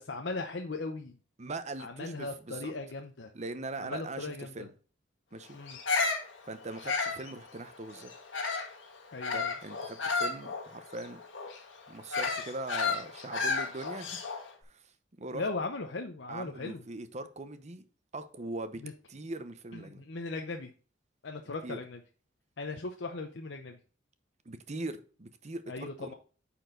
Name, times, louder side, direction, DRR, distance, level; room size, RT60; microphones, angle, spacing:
voice 1, 0.1-1.2 1.8-3.3 3.8-4.7 5.5-5.8 9.1-9.5 15.3-16.8 18.8-18.9 19.7-20.7 21.2-22.0 22.6-23.8 25.7-26.1, left 3 dB, 70° left, 0.8 m, -38 dB
voice 2, 1.4-2.7 3.3-4.7 5.3-5.6 6.5-8.1 9.3-11.2 11.9-14.2 14.6-14.8 15.2-15.4 16.3-17.8 18.1-18.8 19.1-20.0 21.6-21.8 24.5-26.1, right 2 dB, 35° right, 0.8 m, -41 dB
Bird vocalization bird call bird song, 5.7-8.8 9.2-14.5, left 4 dB, 85° left, 1.7 m, -33 dB
9.3 x 4.4 x 3.9 m
head